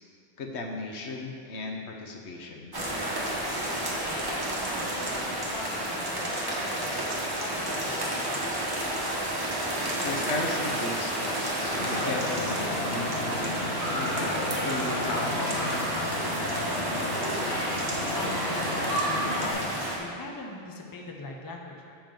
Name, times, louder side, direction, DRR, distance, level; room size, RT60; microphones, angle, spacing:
voice 1, 0.4-2.8 10.0-16.3, left 2 dB, 90° left, 1 dB, 1.1 m, -36 dB
sound 1, 2.7-20.0, right 1 dB, 20° right, 1.0 m, -31 dB
voice 2, 3.8-8.6 18.1-22.0, left 3 dB, 25° left, 0 dB, 0.6 m, -42 dB
sound 2, 11.6-19.5, left 1 dB, 50° left, 2.2 m, -31 dB
7.5 x 5.1 x 5.2 m, 2.4 s
omnidirectional pair, 1.1 m